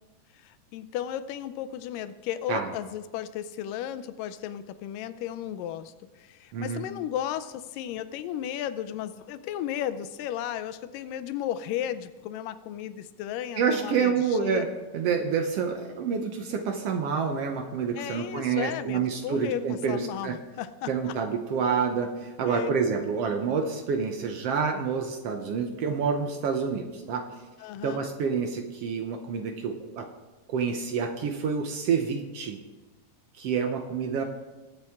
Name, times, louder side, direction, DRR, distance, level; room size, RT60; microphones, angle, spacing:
voice 1, 0.3-14.7 17.9-21.2 22.4-22.7 27.6-28.1, left 11 dB, 90° left, 13 dB, 2.3 m, -34 dB
voice 2, 6.5-6.9 13.6-14.7 14.9-20.3 20.9-27.2 27.8-30.1 30.5-32.6 33.4-34.2, right 6 dB, 75° right, 5 dB, 1.4 m, -28 dB
21.5 x 7.4 x 3.6 m, 1.2 s
omnidirectional pair, 3.8 m